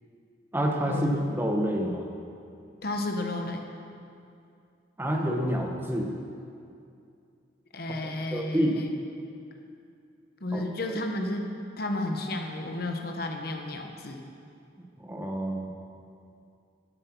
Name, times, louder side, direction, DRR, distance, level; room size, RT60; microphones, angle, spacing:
voice 1, 0.5-2.1 5.0-6.1 8.3-8.8 10.5-10.6 10.9-11.0 15.0-15.7, equal, 10° right, 1 dB, 1.0 m, -28 dB
voice 2, 2.8-3.6 7.7-8.9 10.4-14.2, left 1 dB, 50° left, 3 dB, 1.0 m, -32 dB
12.5 x 7.7 x 6.0 m, 2.5 s
head